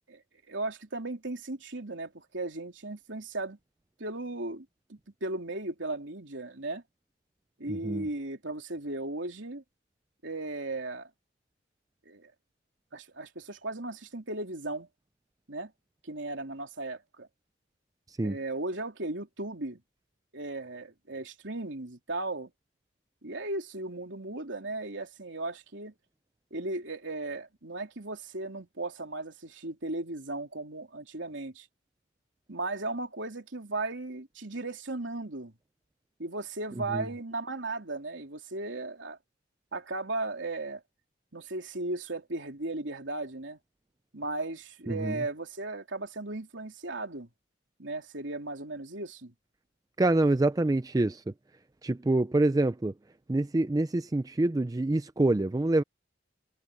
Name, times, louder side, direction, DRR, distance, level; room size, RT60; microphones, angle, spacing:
voice 1, 0.5-3.6 4.0-6.8 7.6-9.6 10.2-11.1 12.0-12.3 12.9-14.9 15.5-15.7 16.0-17.3 18.2-19.8 20.3-22.5 23.2-25.9 26.5-31.7 32.5-35.5 36.2-39.2 39.7-40.8 41.3-43.6 44.1-47.3 47.8-49.3, right 2 dB, 75° right, 3.3 m, -36 dB
voice 2, 7.7-8.1 18.1-18.4 36.9-37.0 44.9-45.2 50.0-51.2 51.8-52.9 53.3-55.8, right 2 dB, 20° right, 0.4 m, -26 dB
head